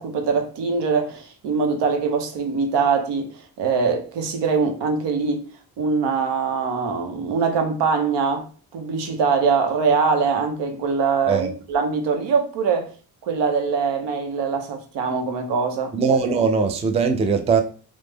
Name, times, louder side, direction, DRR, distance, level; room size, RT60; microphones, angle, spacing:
voice 1, 0.0-5.5 5.8-12.9 13.2-15.9, right 5 dB, 80° right, 0.8 m, -23 dB
voice 2, 15.9-17.6, right 5 dB, 15° right, 0.3 m, -20 dB
3.1 x 2.1 x 3.4 m
cardioid pair, 110°, 42 cm